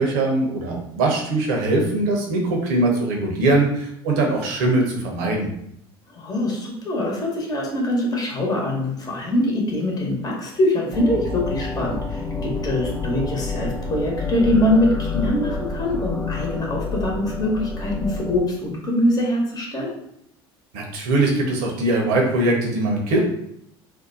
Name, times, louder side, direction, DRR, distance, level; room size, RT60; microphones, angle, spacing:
voice 1, 0.0-5.5 20.7-23.2, right 2 dB, 70° right, 0 dB, 0.9 m, -21 dB
voice 2, 6.1-19.9, left 1 dB, 30° left, -2 dB, 1.1 m, -23 dB
sound 1, 10.9-18.4, left 3 dB, 5° left, 0.5 m, -28 dB
2.6 x 2.2 x 3.9 m, 0.73 s
hypercardioid pair, 75°, 13 cm